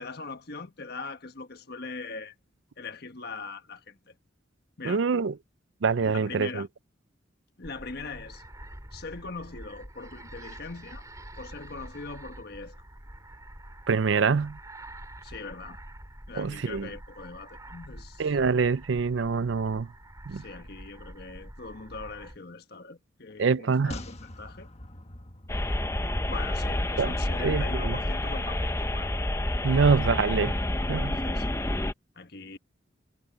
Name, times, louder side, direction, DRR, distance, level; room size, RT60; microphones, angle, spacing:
voice 1, 0.0-2.3 2.8-4.1 4.8-5.0 6.0-6.7 7.6-8.4 8.9-11.1 11.4-12.8 15.2-15.8 16.3-18.4 20.3-24.7 26.3-29.1 29.8-30.0 31.2-31.6 32.1-32.6, left 4 dB, 55° left, 1.4 m, -41 dB
voice 2, 4.8-5.3 5.8-6.7 13.9-14.6 16.3-16.9 18.2-19.9 20.3-20.4 23.4-23.9 27.0-27.1 27.4-28.0 29.6-30.5 30.9-31.2, right 5 dB, 75° right, 0.5 m, -25 dB
sound 1, 7.6-22.4, right 1 dB, 20° right, 3.4 m, -46 dB
sound 2, 23.9-27.3 27.6-27.7, left 1 dB, 35° left, 1.5 m, -44 dB
sound 3, 25.5-31.9, left 1 dB, 15° left, 0.8 m, -29 dB
head